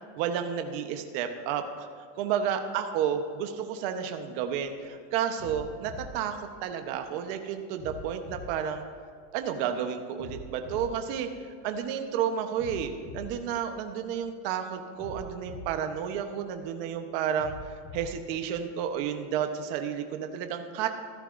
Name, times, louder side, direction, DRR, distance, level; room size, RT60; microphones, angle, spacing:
voice 1, 0.2-1.9 2.2-8.8 9.3-11.3 11.6-17.5 17.9-20.9, right 8 dB, 60° right, 6 dB, 1.0 m, -31 dB
sound 1, 4.5-4.8 5.4-7.2 7.8-9.6 10.2-12.0 12.6-14.4 15.0-16.8 17.4-19.2, left 3 dB, 75° left, 2.1 m, -45 dB
15.0 x 13.0 x 2.6 m, 2.1 s
supercardioid pair, 145°, 32 cm